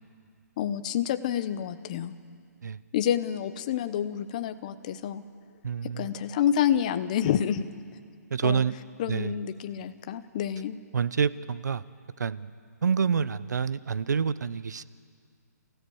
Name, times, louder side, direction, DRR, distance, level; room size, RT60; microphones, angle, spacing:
voice 1, 0.6-2.2 2.9-5.2 5.8-7.7 8.4-8.6 9.0-10.8, left 10 dB, 25° left, 11 dB, 0.7 m, -28 dB
voice 2, 5.6-6.1 8.3-8.7 9.1-9.3 10.9-11.8 12.2-12.5 12.8-14.8, right 6 dB, 80° right, 17 dB, 0.7 m, -27 dB
28.5 x 16.0 x 7.0 m, 2.1 s
hypercardioid pair, 170°, 9 cm